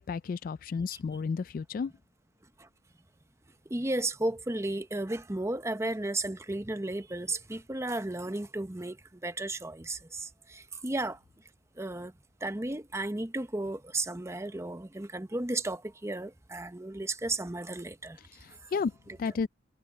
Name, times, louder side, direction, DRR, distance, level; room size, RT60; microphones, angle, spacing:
voice 1, 0.0-1.9 18.7-18.9 19.2-19.5, left 5 dB, 50° left, 0.3 m, -32 dB
voice 2, 3.7-11.2 11.8-12.1 12.4-18.2 18.6-18.7 19.1-19.3, right 2 dB, 15° right, 0.8 m, -34 dB
head